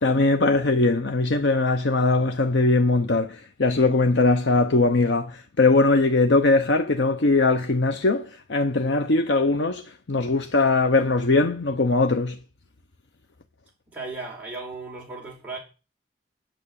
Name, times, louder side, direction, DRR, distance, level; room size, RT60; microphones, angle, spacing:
voice 1, 0.0-12.4, left 3 dB, 80° left, 0.8 m, -21 dB
voice 2, 13.9-15.6, right 3 dB, 10° right, 4.6 m, -36 dB
9.1 x 6.4 x 8.5 m
head